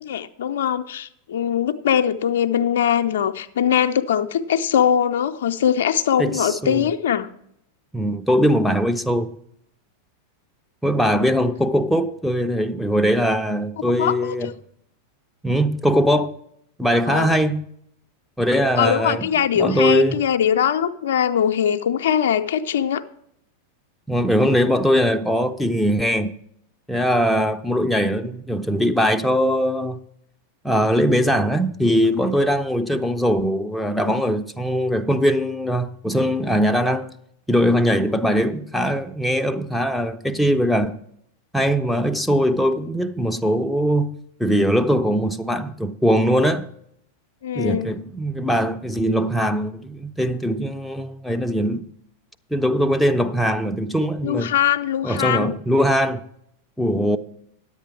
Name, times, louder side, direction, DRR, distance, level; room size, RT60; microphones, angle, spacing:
voice 1, 0.0-7.3 14.0-14.5 17.1-17.3 18.8-23.0 47.4-47.9 54.2-55.6, left 9 dB, 60° left, 0.4 m, -21 dB
voice 2, 6.2-6.9 7.9-9.4 10.8-14.5 15.4-16.3 16.8-17.6 18.4-19.3 19.5-20.2 24.1-26.4 26.9-30.0 30.6-37.1 37.5-41.0 41.5-46.7 47.5-51.9 52.5-54.6 55.0-56.3 56.8-57.2, equal, ahead, 0.5 m, -21 dB
10.0 x 8.3 x 4.7 m
figure-of-eight pair, 90°, 0 cm